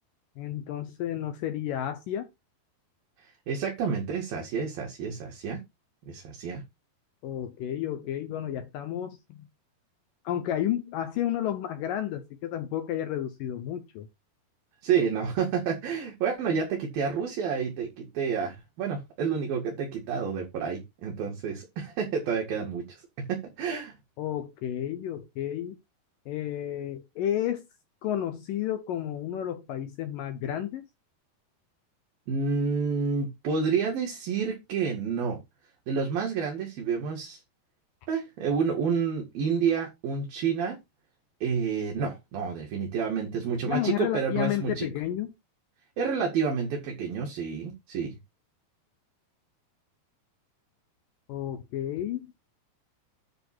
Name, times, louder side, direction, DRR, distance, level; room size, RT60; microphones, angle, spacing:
voice 1, 0.4-2.3 7.2-9.4 10.2-14.1 24.2-25.8 26.3-27.6 28.0-30.9 43.6-45.3 51.3-52.3, left 11 dB, 75° left, 2.1 m, -31 dB
voice 2, 3.5-5.6 6.1-6.6 14.8-23.0 23.3-23.9 32.3-35.4 35.9-37.4 38.1-40.8 41.4-44.9 46.0-48.2, right 6 dB, 60° right, 3.7 m, -29 dB
11.0 x 3.7 x 6.1 m
omnidirectional pair, 4.9 m